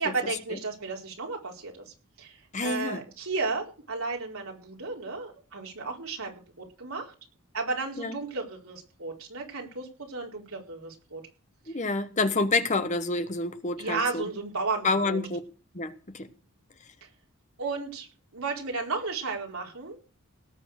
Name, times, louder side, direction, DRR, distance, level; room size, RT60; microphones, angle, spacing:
voice 1, 0.0-7.1 7.5-11.2 13.8-15.2 17.6-18.1 18.3-20.0, right 4 dB, 80° right, 4.5 m, -33 dB
voice 2, 2.5-3.0 8.0-8.2 11.7-14.2 14.8-15.4 15.7-16.3, left 3 dB, 35° left, 1.1 m, -28 dB
18.5 x 7.0 x 6.5 m
head